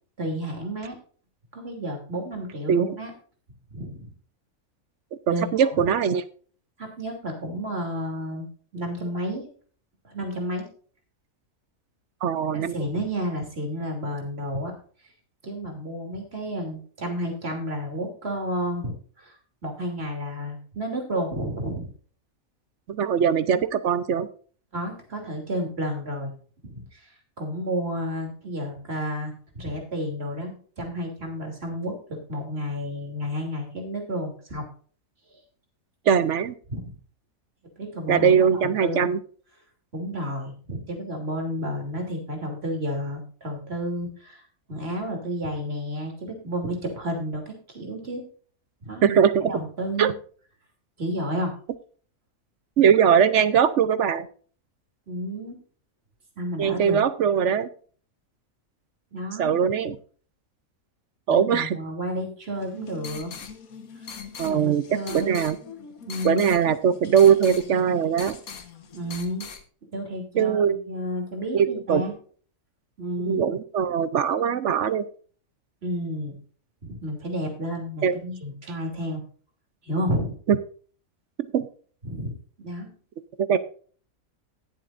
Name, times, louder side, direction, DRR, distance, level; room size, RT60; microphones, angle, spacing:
voice 1, 0.2-1.0 1.5-3.1 3.7-4.1 5.3-5.7 6.8-8.5 8.7-9.5 10.0-10.7 12.7-14.7 15.4-21.9 24.7-26.3 26.6-34.7 36.7-36.8 37.8-39.1 39.9-44.4 44.7-48.2 48.8-49.2 49.4-50.1 51.0-51.5 55.1-55.6 56.4-57.0 59.1-59.5 61.3-63.3 64.4-65.4 66.1-66.6 68.9-69.5 69.9-72.1 73.0-73.4 75.8-76.4 76.8-79.2 79.8-80.3 82.0-82.3 82.6-82.9, equal, 45° right, 2 dB, 3.2 m, -31 dB
voice 2, 5.3-6.2 12.2-12.7 22.9-24.3 36.1-36.5 38.1-39.2 49.0-49.5 50.0-50.1 52.8-54.3 56.6-57.7 59.4-60.0 61.3-61.8 64.4-64.8 65.1-65.6 66.2-68.4 70.4-70.7 71.5-72.0 73.2-75.0 78.0-78.2 80.5-80.6 81.5-81.7 83.5-83.6, right 7 dB, 60° right, 14 dB, 0.9 m, -21 dB
sound 1, 62.6-69.6, left 6 dB, 80° left, 1.7 m, -41 dB
19.0 x 7.4 x 2.5 m, 0.44 s
omnidirectional pair, 1.5 m